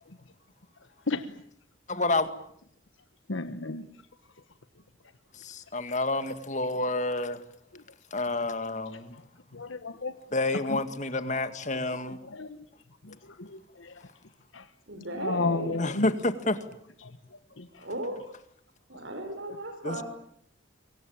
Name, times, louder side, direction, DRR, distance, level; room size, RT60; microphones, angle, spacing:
voice 1, 1.9-2.3 5.3-7.4 8.1-9.2 10.3-12.2 15.8-16.6 19.8-20.0, left 2 dB, 35° left, 11 dB, 2.0 m, -29 dB
voice 2, 3.3-3.8 9.6-10.1 12.4-12.5 15.2-16.1, left 3 dB, 80° left, 10 dB, 1.3 m, -30 dB
voice 3, 14.9-15.8 17.8-18.2 18.9-20.0, right 1 dB, 65° right, 4 dB, 4.4 m, -36 dB
26.0 x 23.5 x 8.9 m, 0.68 s
head